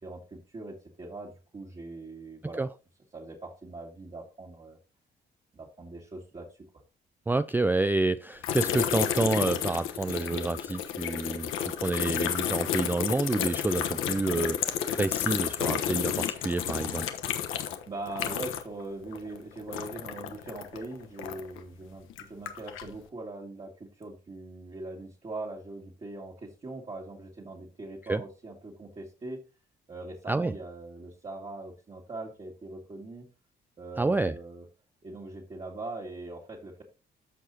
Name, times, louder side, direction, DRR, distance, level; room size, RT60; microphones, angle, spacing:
voice 1, 0.0-2.7 3.1-4.8 5.5-6.7 17.9-29.4 29.9-33.3 33.8-34.7 35.0-36.8, right 2 dB, 30° right, 2.1 m, -41 dB
voice 2, 7.3-11.5 11.8-17.1 28.1-28.2 30.3-30.5 34.0-34.4, right 3 dB, 10° right, 0.3 m, -28 dB
sound 1, 8.4-18.8 19.1-21.6 22.1-22.9, left 9 dB, 90° left, 1.1 m, -31 dB
14.0 x 4.8 x 2.8 m
cardioid pair, 90°, 20 cm